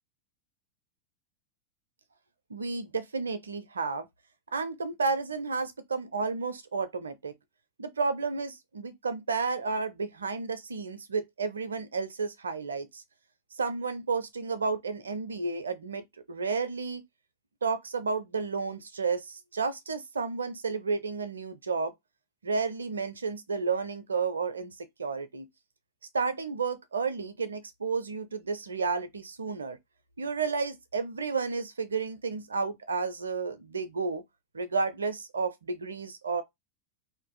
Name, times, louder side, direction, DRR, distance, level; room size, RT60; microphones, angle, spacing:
voice 1, 2.5-4.1 4.5-7.3 7.8-13.0 13.6-17.0 17.6-21.9 22.4-24.7 25.0-25.5 26.1-29.8 30.2-34.2 34.5-36.4, right 4 dB, 70° right, 0.4 m, -32 dB
2.5 x 2.5 x 2.2 m
figure-of-eight pair, 90°, 0 cm